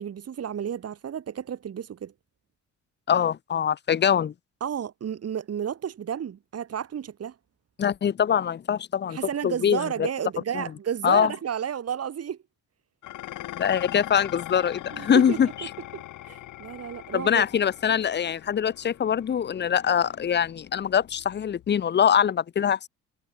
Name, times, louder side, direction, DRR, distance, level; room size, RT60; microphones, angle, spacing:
voice 1, 0.0-2.1 4.6-7.3 9.1-12.4 14.9-15.4 15.9-17.4, right 8 dB, 55° right, 2.9 m, -32 dB
voice 2, 3.1-4.3 7.8-9.2 9.4-9.9 10.5-10.6 11.0-11.3 13.6-15.5 17.1-22.9, left 8 dB, 35° left, 0.7 m, -23 dB
Dishes pots and pans, 13.0-21.8, left 14 dB, 85° left, 4.7 m, -41 dB
cardioid pair, 90°, 30 cm